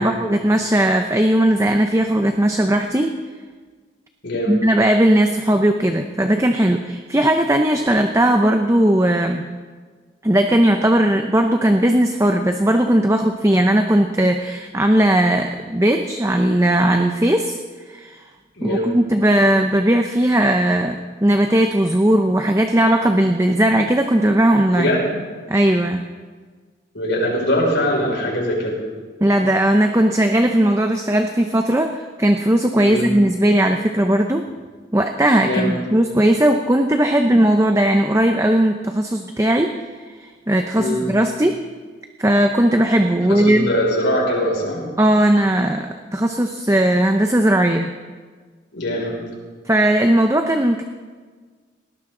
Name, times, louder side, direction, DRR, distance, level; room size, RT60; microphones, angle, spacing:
voice 1, 0.0-3.1 4.5-9.4 10.2-17.5 17.9-18.2 18.6-25.0 25.5-26.0 29.2-34.5 34.9-39.7 40.1-41.5 42.2-43.7 45.0-47.9 49.7-50.8, right 1 dB, 15° right, 5 dB, 0.7 m, -17 dB
voice 2, 4.2-4.6 18.5-18.9 24.7-25.1 26.9-28.8 32.8-33.1 35.4-35.7 40.8-41.1 43.3-44.8 48.7-49.2, equal, 65° left, -3 dB, 5.8 m, -22 dB
19.5 x 18.5 x 3.9 m, 1.5 s
head